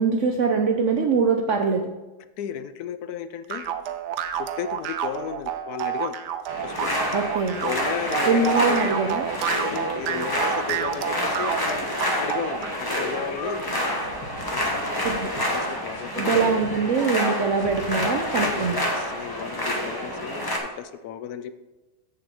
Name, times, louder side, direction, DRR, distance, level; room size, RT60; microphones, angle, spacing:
voice 1, 0.0-1.9 7.1-7.6 8.2-9.3 15.0-15.3 16.1-18.8, right 4 dB, 60° right, 4 dB, 0.8 m, -23 dB
voice 2, 2.4-3.7 4.3-6.2 6.6-6.9 7.6-8.9 9.7-11.9 12.2-13.6 14.5-15.0 15.5-16.4 18.4-18.6 18.9-21.5, left 8 dB, 70° left, 12 dB, 1.0 m, -34 dB
sound 1, 3.5-12.8, right 9 dB, 80° right, 1.2 m, -29 dB
sound 2, 6.5-20.6, left 1 dB, 15° left, 1.0 m, -28 dB
sound 3, 14.0-16.0 16.3-18.8, left 2 dB, 90° left, 2.1 m, -42 dB
7.8 x 6.9 x 4.4 m, 1.1 s
omnidirectional pair, 1.8 m